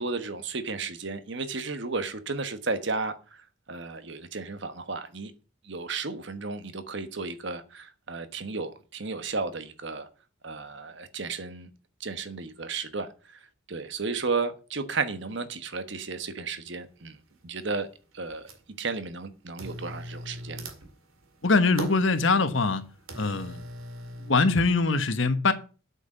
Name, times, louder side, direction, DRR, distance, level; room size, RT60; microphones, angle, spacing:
voice 1, 0.0-5.3 5.6-10.1 10.4-11.7 12.0-13.4 13.7-17.2 17.4-17.9 18.1-18.5 18.8-20.7, right 4 dB, 60° right, 1.2 m, -33 dB
sound 1, 16.6-16.7 17.3-17.8 18.1-18.8 19.5-24.4, right 1 dB, 85° right, 2.1 m, -41 dB
voice 2, 21.4-22.8 23.1-23.6 24.2-25.5, left 3 dB, 65° left, 1.2 m, -23 dB
8.2 x 6.5 x 7.2 m
head